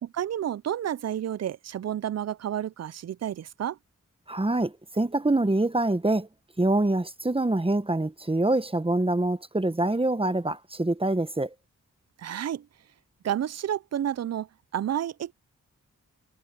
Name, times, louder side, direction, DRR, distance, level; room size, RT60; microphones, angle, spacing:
voice 1, 0.0-3.8 12.2-12.7 13.2-14.5 14.7-15.3, right 10 dB, 50° right, 0.4 m, -30 dB
voice 2, 4.3-6.3 6.6-11.5, right 2 dB, 15° right, 1.0 m, -25 dB
wide cardioid pair, 70°, 33 cm